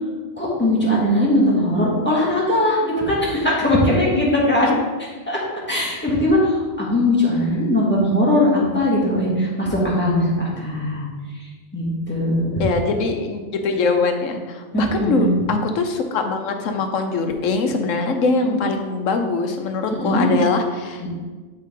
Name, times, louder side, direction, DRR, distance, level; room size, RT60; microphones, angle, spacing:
voice 1, 0.4-4.7 5.3-5.4 5.7-11.1 11.7-12.6 14.7-15.3 18.4-18.6 19.9-20.3 21.0-21.1, left 1 dB, 10° left, -6 dB, 2.1 m, -20 dB
voice 2, 12.6-21.1, left 3 dB, 75° left, 5 dB, 1.2 m, -22 dB
11.0 x 4.5 x 3.8 m, 1.3 s
omnidirectional pair, 1.4 m